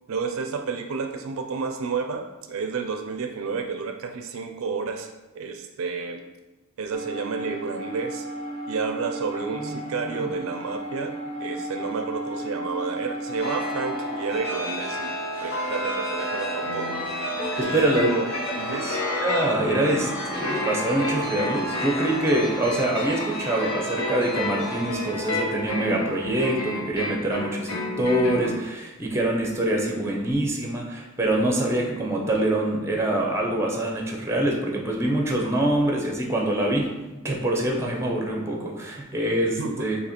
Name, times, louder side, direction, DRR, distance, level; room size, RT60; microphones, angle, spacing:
voice 1, 0.1-6.3 6.8-8.3 8.7-17.0 17.6-18.3 18.6-18.8 39.6-39.9, right 5 dB, 65° right, 5 dB, 0.4 m, -31 dB
sound 1, 6.9-14.4, right 1 dB, 25° left, 0.8 m, -34 dB
Chime, 13.4-27.6, equal, 55° left, 1.2 m, -32 dB
sound 2, 16.6-28.6, left 2 dB, 80° left, 0.9 m, -32 dB
voice 2, 17.6-18.2 18.7-40.0, right 1 dB, 10° right, 0 dB, 0.6 m, -25 dB
4.1 x 2.8 x 4.3 m, 1.1 s
head